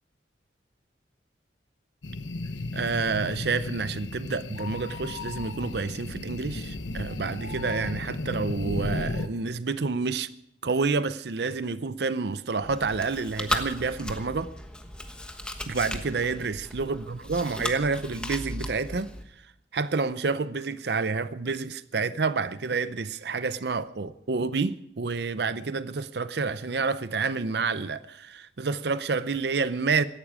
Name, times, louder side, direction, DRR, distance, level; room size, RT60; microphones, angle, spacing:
sound 1, 2.0-9.3, left 2 dB, 85° left, 1.1 m, -34 dB
voice 1, 2.7-10.3 10.6-14.5 15.7-19.1 19.7-30.0, right 4 dB, 60° right, 0.6 m, -29 dB
Chewing mastication, 12.6-19.2, left 1 dB, 5° left, 1.2 m, -36 dB
17.5 x 14.0 x 4.9 m
head